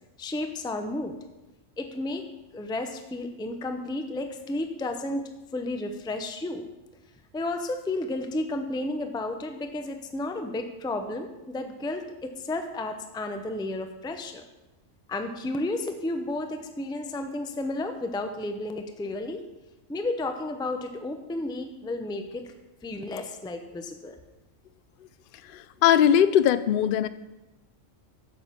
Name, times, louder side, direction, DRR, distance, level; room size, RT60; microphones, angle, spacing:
voice 1, 0.2-1.2 1.8-2.2 2.5-6.7 7.3-14.4 15.1-19.4 19.9-22.5 22.8-24.2, left 2 dB, 5° left, 6 dB, 0.5 m, -32 dB
voice 2, 25.5-27.1, left 10 dB, 65° left, 14 dB, 0.5 m, -20 dB
9.3 x 6.7 x 5.9 m, 1.0 s
omnidirectional pair, 1.4 m